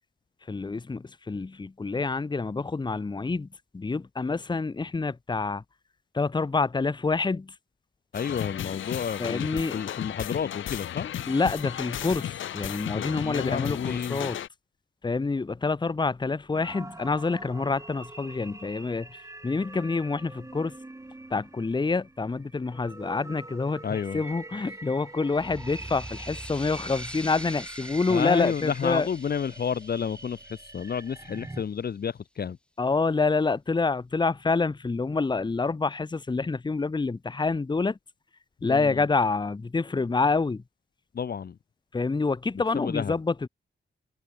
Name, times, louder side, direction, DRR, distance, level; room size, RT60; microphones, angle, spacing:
voice 1, 0.5-3.5 3.7-5.6 6.1-7.5 9.2-9.7 11.3-14.4 15.0-19.2 19.4-20.8 21.3-29.1 32.8-38.0 38.6-40.6 41.9-43.5, left 4 dB, 20° left, 0.9 m, -27 dB
sound 1, 8.1-14.5, left 11 dB, 80° left, 0.5 m, -34 dB
voice 2, 8.1-11.1 12.9-14.2 23.8-24.2 28.1-32.6 38.6-39.0 41.1-41.6 42.7-43.2, left 7 dB, 50° left, 0.8 m, -31 dB
sound 2, 16.5-31.6, right 2 dB, 15° right, 1.5 m, -44 dB
sound 3, 25.3-31.6, left 1 dB, 5° left, 5.9 m, -46 dB
wide cardioid pair, 120°, 20 cm